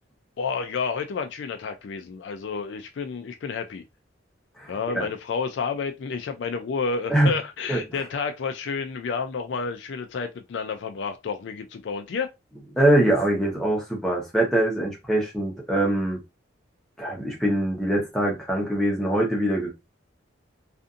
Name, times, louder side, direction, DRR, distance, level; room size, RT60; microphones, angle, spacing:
voice 1, 0.4-3.8 4.7-12.3, left 5 dB, 55° left, 0.3 m, -30 dB
voice 2, 4.6-5.1 7.1-7.3 7.7-7.8 12.7-16.2 17.0-19.7, right 1 dB, ahead, 0.8 m, -23 dB
2.5 x 2.5 x 2.4 m
head